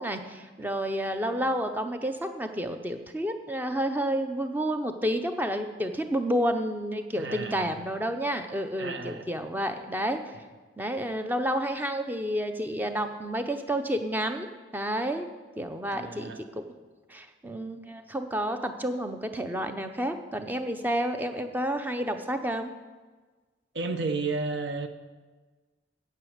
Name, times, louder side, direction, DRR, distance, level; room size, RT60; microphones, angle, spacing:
voice 1, 0.0-10.2 10.8-14.5 14.7-15.3 15.6-16.6 17.1-22.7, equal, 10° right, 7 dB, 0.7 m, -30 dB
voice 2, 7.1-7.7 8.8-9.3 15.9-16.4 23.7-24.9, right 3 dB, 70° right, 8 dB, 0.9 m, -32 dB
9.4 x 7.8 x 6.6 m, 1.3 s
head